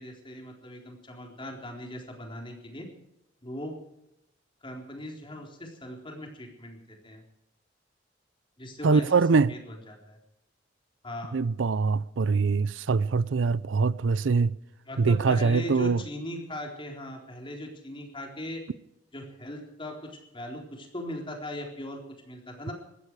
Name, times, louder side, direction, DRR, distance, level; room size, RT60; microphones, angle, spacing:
voice 1, 0.0-2.8 3.4-3.8 4.6-7.2 8.6-10.2 11.0-11.3 14.9-18.6 19.1-22.0 22.3-22.7, left 1 dB, 30° left, 4.0 m, -39 dB
voice 2, 8.8-9.5 11.3-14.6 15.0-16.0, right 4 dB, 90° right, 0.5 m, -23 dB
19.5 x 15.5 x 4.8 m
head